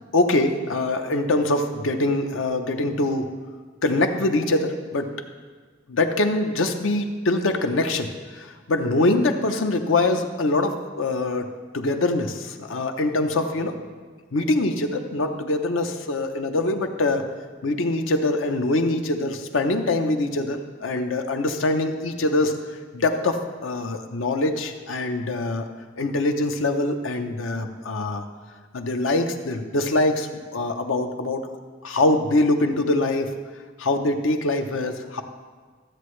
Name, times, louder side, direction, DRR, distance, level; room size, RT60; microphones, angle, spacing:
voice 1, 0.1-3.3 3.8-5.1 5.9-13.8 14.3-17.3 17.6-22.6 22.9-25.7 26.0-28.2 28.7-31.4 31.8-33.3 33.8-35.2, left 2 dB, 90° left, 6 dB, 0.7 m, -23 dB
13.0 x 7.7 x 3.2 m, 1.5 s
head